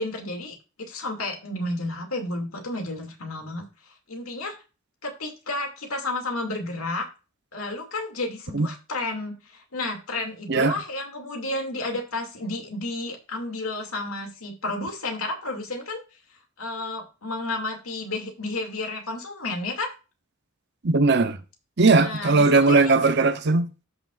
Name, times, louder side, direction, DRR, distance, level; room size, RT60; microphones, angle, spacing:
voice 1, 0.0-3.6 4.1-4.5 5.0-7.1 7.5-16.0 16.6-19.9 21.9-23.1, left 2 dB, 80° left, 2.6 m, -31 dB
voice 2, 20.8-21.4 21.8-23.7, right 3 dB, 55° right, 0.9 m, -19 dB
14.0 x 6.1 x 2.6 m
head